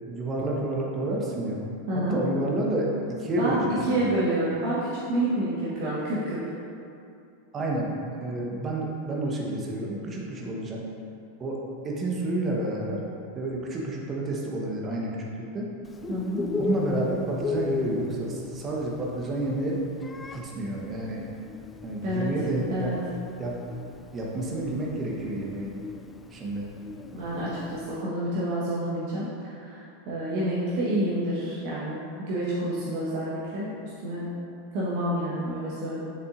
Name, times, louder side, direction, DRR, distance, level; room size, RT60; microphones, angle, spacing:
voice 1, 0.1-1.6 2.1-4.0 7.5-7.9 8.2-10.8 11.4-11.6 11.8-13.0 13.3-15.7 16.6-19.8 20.3-21.2 21.8-23.0 23.4-23.6 24.1-25.7 26.3-26.7, right 1 dB, 25° right, -3 dB, 1.2 m, -29 dB
voice 2, 1.9-2.2 3.4-3.6 3.8-6.4 16.1-16.4 22.0-22.3 22.7-23.0 27.1-33.7 34.0-34.2 34.7-36.0, right 1 dB, 45° right, -8 dB, 1.3 m, -28 dB
Bird, 15.9-28.0, left 4 dB, 15° left, 0.3 m, -36 dB
8.5 x 6.7 x 2.6 m, 2.6 s
figure-of-eight pair, 85°, 0 cm